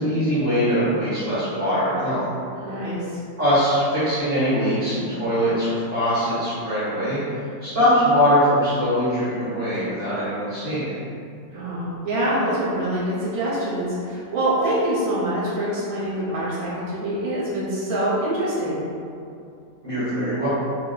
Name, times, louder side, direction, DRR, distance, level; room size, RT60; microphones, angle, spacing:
voice 1, 0.0-2.3 3.4-10.9 19.8-20.5, equal, 40° right, -13 dB, 1.2 m, -22 dB
voice 2, 2.6-3.2 11.5-18.8, right 1 dB, 65° right, -7 dB, 1.2 m, -25 dB
2.9 x 2.1 x 3.8 m, 2.5 s
omnidirectional pair, 1.7 m